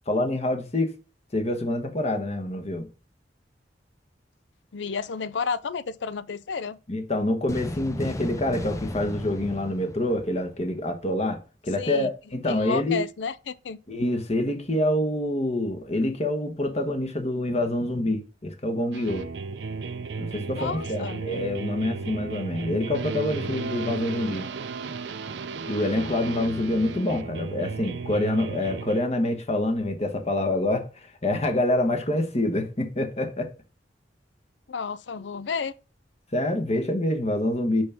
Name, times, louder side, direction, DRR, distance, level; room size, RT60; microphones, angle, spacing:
voice 1, 0.1-0.9 1.3-2.9 6.9-13.0 13.9-19.3 20.2-24.5 25.7-33.5 36.3-37.8, left 1 dB, 35° left, 1.3 m, -26 dB
voice 2, 4.7-6.8 11.8-12.1 12.4-13.8 20.6-21.2 34.7-35.7, left 5 dB, 80° left, 0.5 m, -31 dB
sound 1, 7.5-10.9, left 1 dB, 15° left, 0.5 m, -35 dB
sound 2, 18.9-29.0, right 4 dB, 70° right, 0.5 m, -34 dB
6.3 x 5.9 x 3.5 m
head